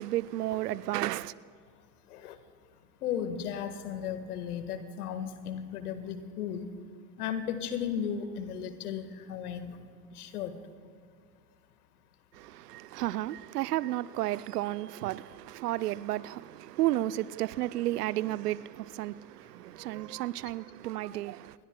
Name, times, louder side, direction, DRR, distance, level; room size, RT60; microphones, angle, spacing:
voice 1, 0.0-1.3 12.3-21.5, right 15 dB, 75° right, 0.6 m, -32 dB
voice 2, 3.0-6.7 7.2-9.8 10.1-10.5, left 8 dB, 70° left, 1.7 m, -35 dB
28.5 x 21.5 x 2.3 m
hypercardioid pair, 80°, 47 cm